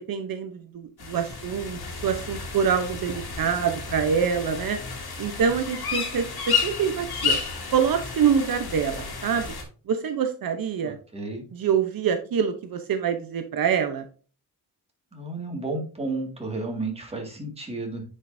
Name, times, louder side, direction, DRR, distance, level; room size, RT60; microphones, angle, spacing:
voice 1, 0.1-4.8 5.2-7.4 7.7-9.5 9.9-11.0 11.5-14.1, right 7 dB, 65° right, 7 dB, 0.9 m, -25 dB
sound 1, 1.0-9.6, left 5 dB, 80° left, 2.4 m, -31 dB
voice 2, 10.8-11.4 15.1-18.0, right 2 dB, 15° right, 1 dB, 2.0 m, -32 dB
9.5 x 5.5 x 2.7 m, 0.38 s
wide cardioid pair, 150°, 37 cm